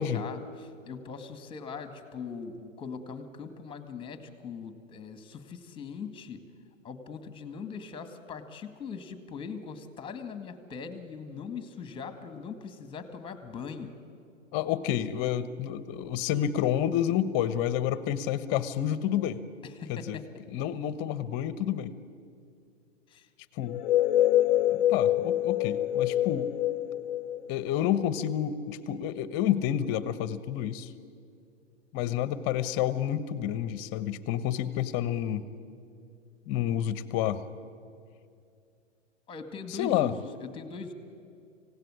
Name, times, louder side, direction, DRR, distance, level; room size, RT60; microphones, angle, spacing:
voice 1, 0.0-6.4 6.8-14.0 19.6-20.4 23.1-23.3 39.3-40.9, left 5 dB, 15° left, 9 dB, 1.9 m, -41 dB
voice 2, 14.5-19.4 19.9-20.2 20.5-21.9 23.6-23.8 24.7-26.5 27.5-30.9 31.9-35.5 36.5-37.4 39.8-40.1, left 10 dB, 30° left, 15 dB, 1.1 m, -29 dB
sound 1, 23.7-28.3, left 13 dB, 50° left, 0.7 m, -26 dB
26.0 x 17.0 x 9.8 m, 2.4 s
hypercardioid pair, 120°, 36 cm